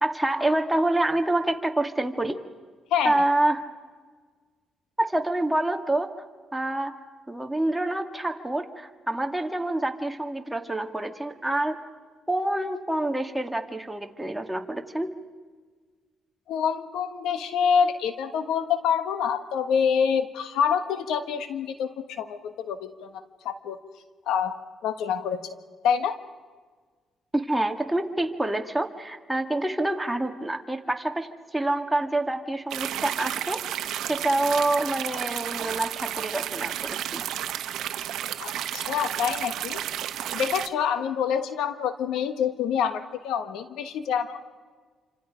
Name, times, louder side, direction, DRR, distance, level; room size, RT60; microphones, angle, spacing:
voice 1, 0.0-2.4 3.0-3.6 5.0-6.1 6.5-6.9 7.3-11.8 12.3-15.1 27.3-37.2, right 1 dB, 5° right, 4 dB, 2.0 m, -27 dB
voice 2, 2.9-3.2 16.5-23.8 24.3-24.5 24.8-25.5 25.8-26.2 38.4-39.8 40.3-44.5, left 7 dB, 85° left, 9 dB, 1.4 m, -26 dB
sound 1, 32.7-40.7, right 11 dB, 80° right, 0.9 m, -32 dB
28.0 x 26.0 x 5.1 m, 1.5 s
cardioid pair, 90°, 0 cm